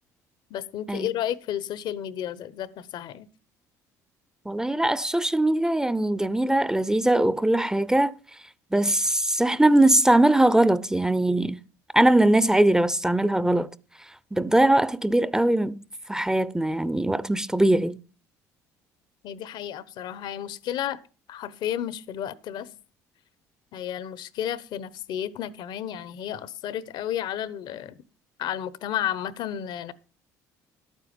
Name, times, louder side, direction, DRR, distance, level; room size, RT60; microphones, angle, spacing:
voice 1, 0.5-3.3 19.2-21.0 21.3-22.7 23.7-28.0 28.4-29.9, left 10 dB, 65° left, 1.0 m, -32 dB
voice 2, 4.5-8.1 8.7-11.6 11.9-13.7 14.3-15.8 16.1-18.0, right 1 dB, 5° right, 0.7 m, -21 dB
11.5 x 9.1 x 5.2 m
hypercardioid pair, 70°, 8 cm